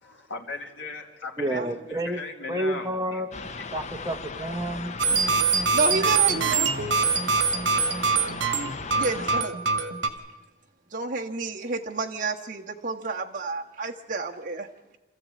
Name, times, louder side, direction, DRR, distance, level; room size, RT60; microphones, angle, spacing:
voice 1, 0.0-3.2 5.9-6.7, left 3 dB, 80° left, 1 dB, 2.3 m, -38 dB
voice 2, 1.4-2.2 2.5-3.3 3.7-5.3, right 1 dB, 20° right, 4 dB, 1.3 m, -30 dB
sound 1, 3.3-9.4, left 4 dB, 35° left, 0.8 m, -37 dB
sound 2, 5.0-10.1, right 5 dB, 70° right, 1.8 m, -24 dB
voice 3, 5.7-6.7 8.9-9.5 10.9-14.7, right 3 dB, 45° right, 0 dB, 1.5 m, -29 dB
26.0 x 14.0 x 8.6 m, 1.2 s
head